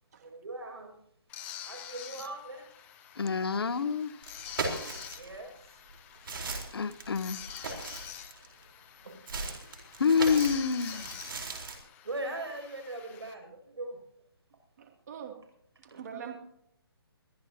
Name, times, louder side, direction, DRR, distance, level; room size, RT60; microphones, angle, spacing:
voice 1, 0.2-1.0 1.7-2.7 5.1-5.8 9.0-9.2 12.0-14.0 15.9-16.0, right 2 dB, 80° right, 4 dB, 7.0 m, -40 dB
sound 1, 1.3-13.3, left 10 dB, 10° left, 0.6 m, -47 dB
voice 2, 3.2-4.1 6.7-7.4 10.0-11.2, left 5 dB, 70° left, 14 dB, 1.0 m, -27 dB
sound 2, 4.2-5.4 5.9-8.6 9.3-11.8, right 3 dB, 60° right, 4.2 m, -38 dB
voice 3, 14.8-15.3 15.8-16.4, right 8 dB, 40° right, 2 dB, 2.7 m, -43 dB
23.0 x 14.5 x 2.9 m, 0.73 s
hypercardioid pair, 165°, 13 cm